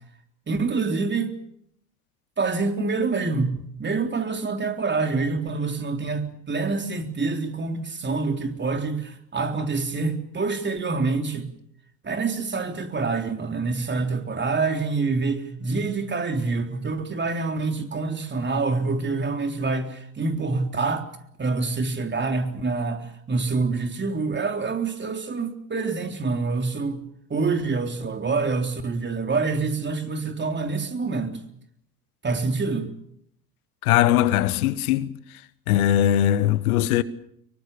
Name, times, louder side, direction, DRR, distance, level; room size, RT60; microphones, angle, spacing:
voice 1, 0.5-1.4 2.4-11.5 12.0-21.1 21.4-27.0 27.3-31.4 32.2-32.9, right 4 dB, 25° right, 3.8 m, -26 dB
voice 2, 33.8-35.2 35.7-37.0, left 12 dB, 70° left, 1.3 m, -20 dB
25.5 x 23.0 x 6.9 m
hypercardioid pair, 70°, 45 cm